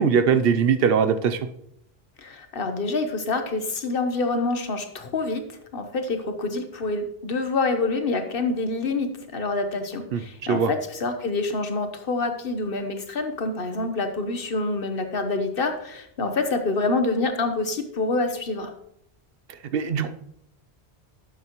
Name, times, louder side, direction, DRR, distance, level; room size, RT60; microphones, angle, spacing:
voice 1, 0.0-1.5 10.1-10.7 19.5-20.1, right 6 dB, 70° right, 10 dB, 0.8 m, -21 dB
voice 2, 2.2-5.4 5.7-18.7, left 3 dB, 65° left, 7 dB, 1.2 m, -27 dB
11.5 x 7.3 x 3.0 m, 0.71 s
omnidirectional pair, 1.0 m